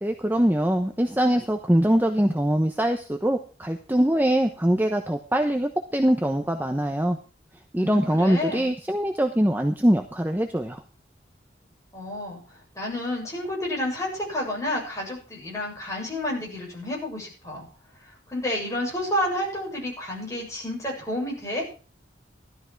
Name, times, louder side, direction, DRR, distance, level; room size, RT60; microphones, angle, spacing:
voice 1, 0.0-7.2 7.7-10.8, right 1 dB, 10° right, 4 dB, 1.0 m, -23 dB
voice 2, 7.7-8.7 11.9-12.4 12.7-17.7 18.3-21.6, left 1 dB, 15° left, -3 dB, 7.7 m, -30 dB
16.0 x 13.0 x 4.7 m, 0.37 s
head